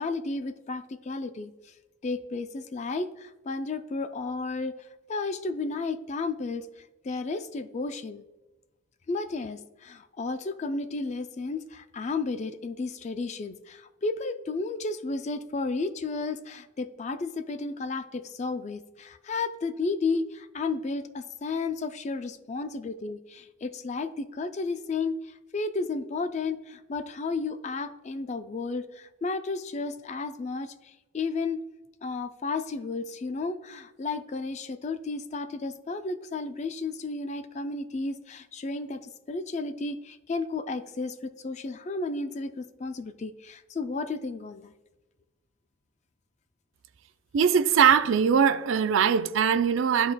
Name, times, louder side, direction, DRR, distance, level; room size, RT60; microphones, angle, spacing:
voice 1, 0.0-1.5 2.0-8.2 9.1-31.6 32.0-44.7, left 3 dB, 35° left, 0.3 m, -33 dB
voice 2, 47.3-50.1, right 7 dB, 65° right, 0.4 m, -21 dB
11.0 x 4.0 x 2.2 m
head